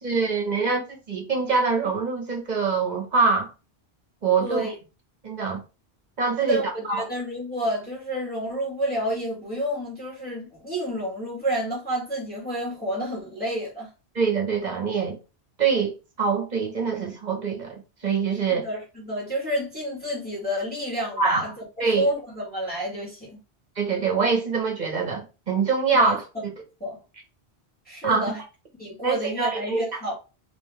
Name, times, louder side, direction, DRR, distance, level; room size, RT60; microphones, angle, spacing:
voice 1, 0.0-3.5 4.2-4.7 5.2-5.6 6.2-7.0 14.1-15.2 15.6-18.7 21.2-21.5 21.8-22.0 23.8-26.2 28.0-28.3 29.0-30.0, right 5 dB, 45° right, 1.1 m, -24 dB
voice 2, 4.4-4.7 6.4-13.9 18.6-21.5 21.8-23.3 25.9-26.1 26.8-27.0 27.9-28.4 28.8-30.1, equal, 10° left, 1.8 m, -29 dB
3.8 x 3.0 x 3.3 m
omnidirectional pair, 1.1 m